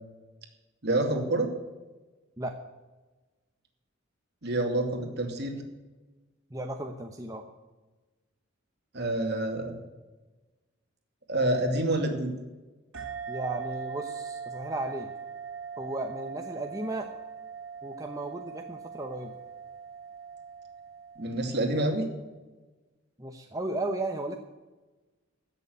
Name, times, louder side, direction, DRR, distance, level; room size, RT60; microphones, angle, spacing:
voice 1, 0.8-1.5 4.4-5.6 8.9-9.7 11.3-12.3 21.2-22.1, right 1 dB, 55° right, 3 dB, 2.5 m, -27 dB
voice 2, 6.5-7.5 13.3-15.1 15.8-17.1 17.8-19.3 23.2-24.4, right 2 dB, 15° right, 3 dB, 0.9 m, -35 dB
sound 1, 12.9-22.0, right 6 dB, 80° right, 2.4 m, -41 dB
16.0 x 6.9 x 9.3 m, 1.2 s
head